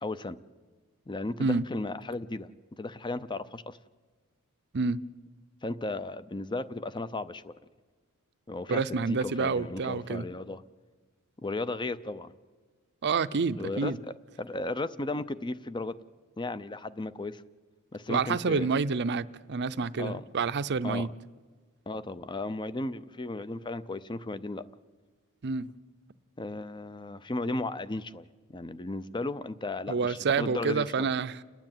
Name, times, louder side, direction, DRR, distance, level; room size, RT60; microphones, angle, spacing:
voice 1, 0.0-0.4 1.1-2.5 2.8-3.8 5.6-7.5 8.5-8.8 9.1-10.6 11.4-12.3 13.6-13.9 14.4-15.9 16.4-17.4 17.9-18.7 20.0-20.2 20.8-21.1 21.9-24.6 26.4-31.1, left 2 dB, 20° left, 0.6 m, -35 dB
voice 2, 8.7-10.2 13.0-14.0 18.1-21.1 25.4-25.7 29.9-31.4, right 4 dB, 50° right, 0.6 m, -28 dB
29.5 x 10.0 x 9.0 m
head